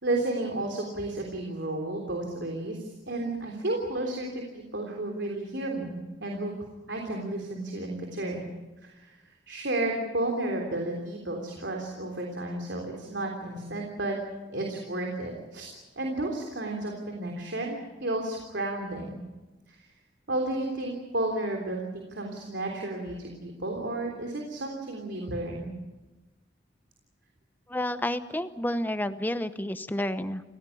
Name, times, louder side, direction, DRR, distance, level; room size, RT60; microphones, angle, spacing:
voice 1, 0.0-6.5 6.9-8.5 8.8-9.2 9.5-14.2 14.5-19.2 19.7-19.9 20.3-25.7, right 2 dB, 70° right, 2 dB, 3.5 m, -32 dB
voice 2, 27.7-30.4, left 1 dB, 10° left, 11 dB, 0.9 m, -30 dB
28.5 x 17.0 x 8.5 m, 1.1 s
head